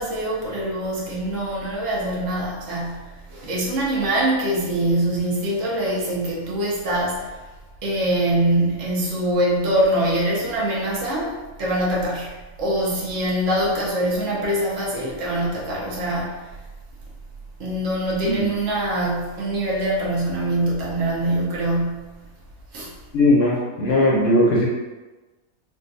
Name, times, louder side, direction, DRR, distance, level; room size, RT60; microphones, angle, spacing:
voice 1, 0.0-7.4 7.8-11.3 11.6-16.5 17.6-22.3 22.7-22.9, right 1 dB, 65° right, -5 dB, 1.1 m, -24 dB
voice 2, 23.1-24.7, left 1 dB, 60° left, -5 dB, 0.7 m, -18 dB
3.6 x 2.4 x 2.5 m, 1.2 s
omnidirectional pair, 1.5 m